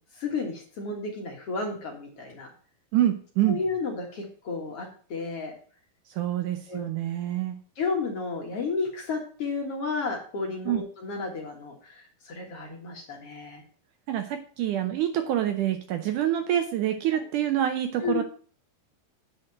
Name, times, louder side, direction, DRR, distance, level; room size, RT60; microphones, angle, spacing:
voice 1, 0.1-2.5 3.5-5.5 6.7-6.8 7.8-13.6 18.0-18.2, left 4 dB, 50° left, 1 dB, 2.1 m, -32 dB
voice 2, 2.9-3.6 6.1-7.6 10.7-10.8 14.1-18.2, right 12 dB, 75° right, 7 dB, 2.0 m, -26 dB
9.0 x 5.3 x 7.3 m, 0.43 s
omnidirectional pair, 4.2 m